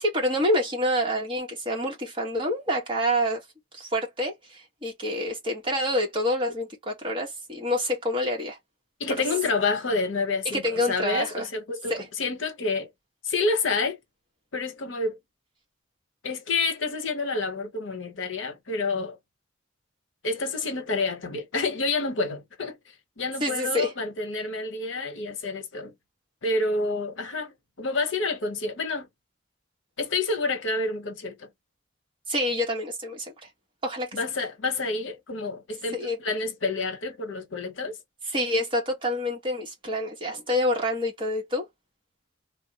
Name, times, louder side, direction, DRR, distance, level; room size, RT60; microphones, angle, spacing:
voice 1, 0.0-3.4 3.7-8.6 10.5-11.5 11.9-12.0 23.4-23.9 32.3-33.3 33.8-34.1 35.9-36.2 38.3-41.7, equal, 25° right, 1.2 m, -27 dB
voice 2, 9.0-12.9 13.2-14.0 14.5-15.2 16.2-19.2 20.2-22.8 23.2-25.9 26.4-29.1 30.0-31.5 34.1-38.0, left 3 dB, 80° left, 0.9 m, -28 dB
3.3 x 2.0 x 2.8 m
head